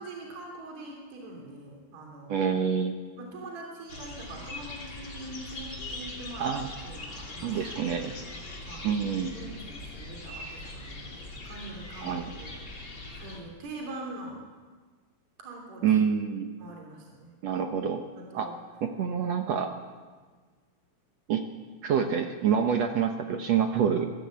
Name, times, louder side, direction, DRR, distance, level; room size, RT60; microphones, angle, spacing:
voice 1, 0.0-2.5 3.2-6.5 6.8-8.2 8.7-12.6 13.1-14.4 15.4-15.8 16.6-17.4 18.1-18.6, right 2 dB, 50° right, 0 dB, 4.2 m, -43 dB
voice 2, 2.3-2.9 6.4-6.7 7.4-8.1 8.8-9.3 12.0-12.3 15.8-16.5 17.4-18.0 18.3-18.5 18.8-19.7 21.3-21.4 21.8-24.1, right 7 dB, 70° right, 5 dB, 1.6 m, -27 dB
sound 1, 3.9-13.4, left 2 dB, 30° left, 3.2 m, -41 dB
21.0 x 15.0 x 8.5 m, 1.4 s
omnidirectional pair, 4.4 m